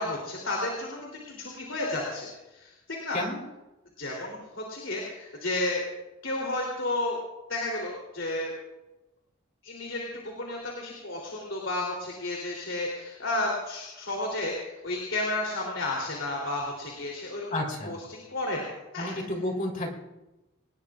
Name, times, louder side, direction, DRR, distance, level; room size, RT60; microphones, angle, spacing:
voice 1, 0.0-3.2 4.0-5.8 6.2-7.2 7.5-8.5 9.6-17.5 17.9-19.1, left 2 dB, 65° left, -2 dB, 3.4 m, -32 dB
voice 2, 17.5-18.0 19.0-19.9, left 1 dB, 40° left, 0 dB, 3.6 m, -31 dB
26.5 x 19.5 x 2.5 m, 1.0 s
head